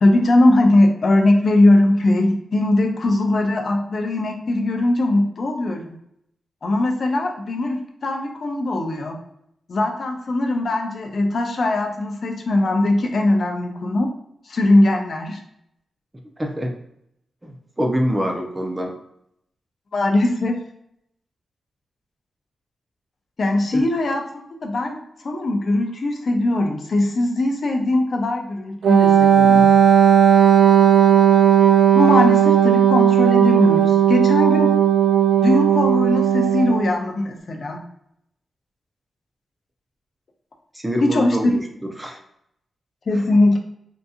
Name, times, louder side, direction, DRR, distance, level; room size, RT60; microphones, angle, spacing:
voice 1, 0.0-6.0 6.6-9.2 9.7-14.1 14.5-15.4 19.9-20.6 23.4-25.0 25.2-29.7 31.9-34.7 35.4-37.8 41.0-41.4 43.1-43.6, left 2 dB, 50° left, 3 dB, 0.5 m, -20 dB
voice 2, 16.4-16.7 17.4-19.0 23.7-23.8 40.7-42.2 43.1-43.3, equal, 15° right, 2 dB, 0.5 m, -25 dB
Wind instrument woodwind instrument, 28.8-36.9, right 9 dB, 85° right, 0.3 m, -15 dB
3.8 x 2.7 x 2.3 m, 0.75 s
wide cardioid pair, 145°, 0 cm